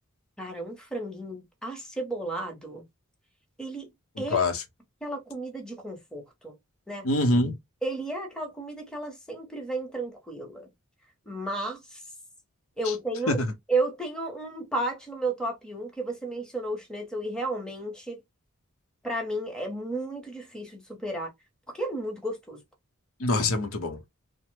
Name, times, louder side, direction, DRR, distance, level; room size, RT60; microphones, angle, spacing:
voice 1, 0.4-2.8 3.6-3.9 4.2-4.4 5.0-6.5 6.9-7.1 7.8-10.7 11.3-12.0 12.8-13.4 13.7-18.2 19.0-21.3 21.7-22.6, right 2 dB, 5° left, 0.9 m, -33 dB
voice 2, 4.2-4.6 7.0-7.6 12.8-12.9 13.3-13.5 23.2-24.0, left 2 dB, 70° left, 0.8 m, -25 dB
2.9 x 2.1 x 3.2 m
head